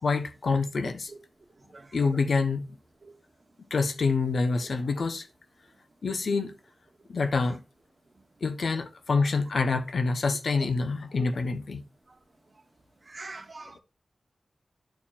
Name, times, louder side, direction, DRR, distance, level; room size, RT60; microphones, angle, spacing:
voice 1, 0.0-1.1 1.9-2.6 3.7-5.3 6.0-6.5 7.1-7.6 8.4-11.8, left 4 dB, 75° left, 0.9 m, -26 dB
voice 2, 13.1-13.8, right 3 dB, 45° right, 1.0 m, -42 dB
11.5 x 4.4 x 2.4 m
wide cardioid pair, 80°, 0 cm